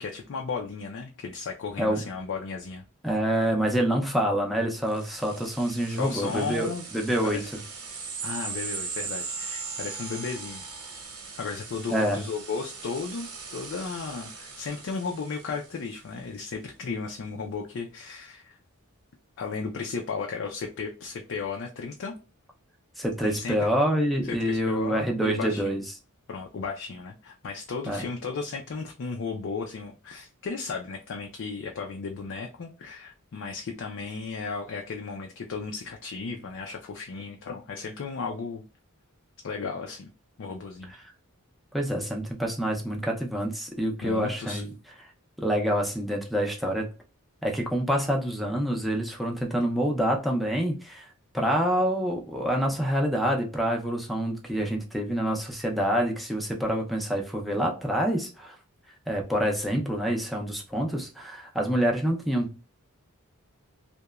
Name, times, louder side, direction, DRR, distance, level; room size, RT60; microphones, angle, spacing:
voice 1, 0.0-2.8 5.9-6.9 7.2-7.5 8.2-10.6 11.4-18.6 19.4-22.1 23.2-23.7 24.2-25.7 26.3-38.6 39.4-40.1 40.4-40.9 44.0-44.6, left 4 dB, 55° left, 0.4 m, -35 dB
voice 2, 3.0-7.6 11.9-12.2 23.0-25.8 27.9-28.1 41.7-44.7 45.4-46.9 47.4-51.1 51.3-58.6 59.1-62.6, equal, ahead, 0.5 m, -27 dB
sound 1, 4.8-15.9, right 5 dB, 70° right, 1.0 m, -39 dB
2.9 x 2.1 x 2.2 m
head